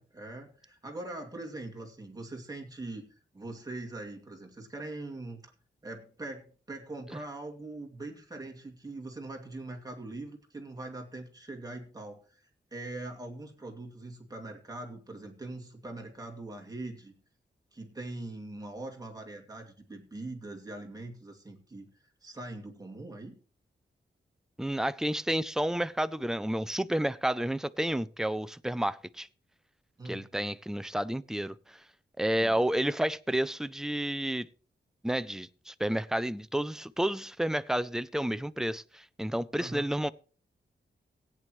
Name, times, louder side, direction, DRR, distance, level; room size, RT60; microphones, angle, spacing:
voice 1, 0.0-3.0 3.3-5.4 5.8-17.1 17.7-21.9 22.2-23.4 30.0-30.3 32.3-32.5 39.6-39.9, right 2 dB, 20° right, 2.4 m, -42 dB
voice 2, 24.6-29.3 30.0-31.8 32.2-34.5 35.0-40.1, right 1 dB, 5° right, 0.4 m, -30 dB
17.0 x 9.3 x 3.1 m
wide cardioid pair, 150°, 19 cm